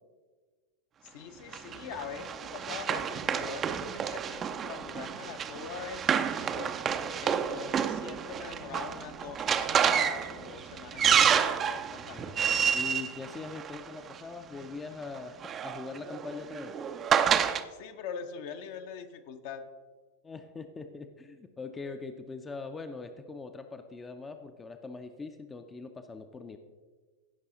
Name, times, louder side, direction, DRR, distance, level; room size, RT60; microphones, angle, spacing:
voice 1, 1.0-6.7 7.2-12.4 17.7-19.6, left 7 dB, 50° left, 7 dB, 0.8 m, -43 dB
Run, 1.5-14.2 15.2-17.6, right 8 dB, 25° right, 0.5 m, -29 dB
voice 2, 12.7-15.4 15.6-16.7 20.2-26.6, left 4 dB, 15° left, 7 dB, 0.6 m, -42 dB
16.0 x 5.5 x 3.9 m, 1.4 s
figure-of-eight pair, 90°, 0 cm